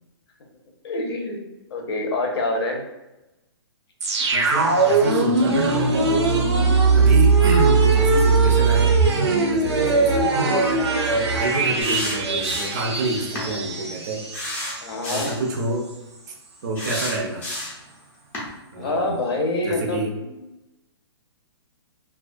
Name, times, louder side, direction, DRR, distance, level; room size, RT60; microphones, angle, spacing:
voice 1, 0.8-1.4 1.7-2.8 14.8-15.3 18.8-20.3, left 2 dB, 65° left, 1 dB, 0.6 m, -26 dB
sound 1, 4.0-14.8 15.1-15.2, right 4 dB, 90° right, 0.6 m, -20 dB
voice 2, 4.3-6.1 6.9-14.2 15.1-15.9 16.6-17.5 18.7-19.2 19.6-20.2, right 1 dB, 45° right, 2 dB, 0.5 m, -28 dB
sound 2, 11.8-12.9 13.3-13.5 14.3-15.4 16.7-17.9 18.3-18.5, left 1 dB, 15° left, 0.5 m, -30 dB
2.3 x 2.2 x 2.4 m, 0.98 s
hypercardioid pair, 155°, 14 cm